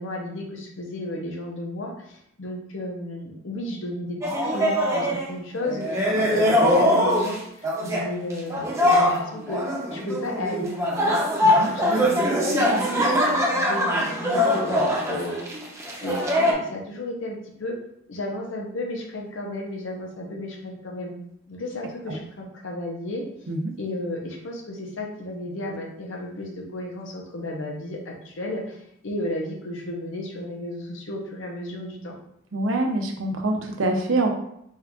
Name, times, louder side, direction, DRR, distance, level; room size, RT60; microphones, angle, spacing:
voice 1, 0.0-9.6 9.9-11.2 11.5-15.6 16.0-17.8 18.1-21.1 21.5-23.3 23.8-32.2, left 1 dB, 70° left, 0 dB, 0.8 m, -33 dB
sound 1, 4.2-5.3 5.6-7.4 7.6-8.1 8.5-16.5, left 1 dB, 15° right, 0.7 m, -22 dB
voice 2, 32.5-34.3, right 2 dB, 75° right, 3 dB, 0.7 m, -24 dB
4.5 x 2.4 x 3.5 m, 0.74 s
head